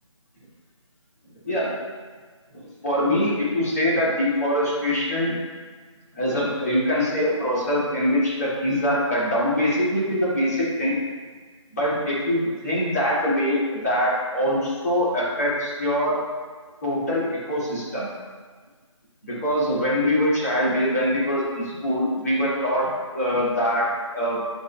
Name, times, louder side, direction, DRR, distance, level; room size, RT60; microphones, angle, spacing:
voice 1, 2.8-5.3 6.2-11.0 11.7-16.2 16.8-18.1 19.2-22.9 23.1-24.4, equal, 30° left, -8 dB, 2.3 m, -23 dB
12.0 x 5.5 x 2.3 m, 1.5 s
figure-of-eight pair, 170°, 17 cm